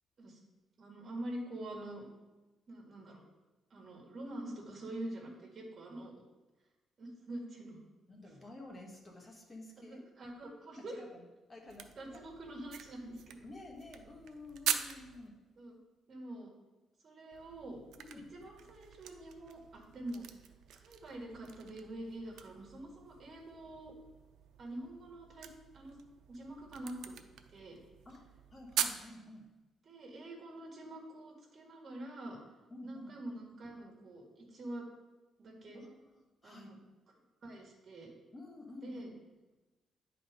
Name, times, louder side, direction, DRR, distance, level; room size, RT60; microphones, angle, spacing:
voice 1, 0.8-2.0 2.7-3.2 3.7-6.1 7.0-7.8 9.9-11.0 11.9-13.4 15.6-15.8 16.1-16.5 17.0-17.8 18.1-20.3 20.7-23.9 24.6-25.5 25.7-26.0 26.3-27.1 27.5-27.8 29.9-32.4 32.8-34.9 35.4-35.8 36.4-36.8 37.4-38.1 38.8-39.1, right 1 dB, 35° right, -1 dB, 1.8 m, -45 dB
voice 2, 8.1-10.0 10.9-12.3 13.4-15.3 18.0-18.3 28.0-28.2 28.5-29.5 32.7-33.1 35.7-36.7 38.3-39.2, left 2 dB, 20° left, 0 dB, 1.3 m, -51 dB
sound 1, 11.7-15.3 17.3-29.0, right 9 dB, 75° right, 0.5 m, -43 dB
9.7 x 4.1 x 5.1 m, 1.1 s
cardioid pair, 170°, 0 cm